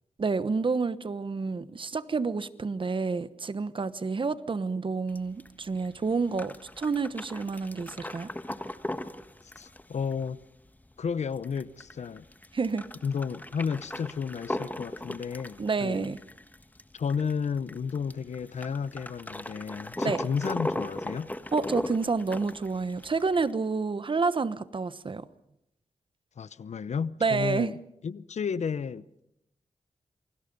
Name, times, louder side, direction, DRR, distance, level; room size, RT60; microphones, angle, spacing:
voice 1, 0.2-8.3 12.5-12.8 15.6-16.2 20.0-20.2 21.5-25.3 27.2-27.7, right 4 dB, 45° right, 1.1 m, -29 dB
sound 1, 5.1-23.5, left 1 dB, 15° left, 1.4 m, -38 dB
voice 2, 9.6-10.4 11.0-12.2 13.0-16.1 16.9-21.3 26.4-27.8 28.0-29.2, left 6 dB, 65° left, 0.8 m, -32 dB
28.0 x 24.5 x 5.4 m
wide cardioid pair, 90°, 12 cm